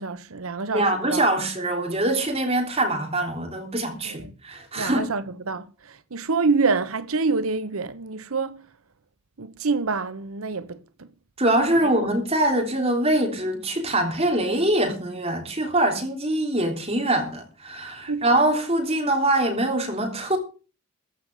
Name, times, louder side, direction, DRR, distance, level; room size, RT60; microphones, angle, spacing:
voice 1, 0.0-0.8 1.1-1.3 4.0-4.3 4.8-8.6 9.4-11.1 11.8-11.9 18.1-18.2, right 4 dB, 80° right, 0.9 m, -26 dB
voice 2, 0.7-5.1 11.4-20.4, right 1 dB, 30° right, 3.3 m, -23 dB
14.5 x 6.2 x 7.8 m
head